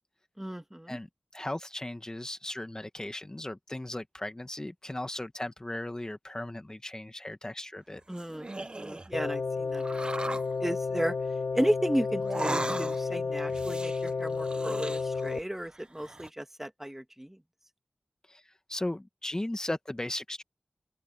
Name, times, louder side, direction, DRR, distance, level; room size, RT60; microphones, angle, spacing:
voice 1, 0.4-1.0 8.1-11.2 11.5-17.4, equal, 10° right, 1.8 m, -34 dB
voice 2, 1.3-8.0 18.3-18.4 18.7-20.4, left 1 dB, 20° left, 1.4 m, -37 dB
sound 1, 7.9-9.1 9.8-10.5 12.2-13.2 13.5-15.4 15.7-16.3, right 2 dB, 30° right, 1.3 m, -37 dB
sound 2, 9.1-15.4, left 4 dB, 85° left, 3.0 m, -32 dB
open air
wide cardioid pair, 85°, 3 cm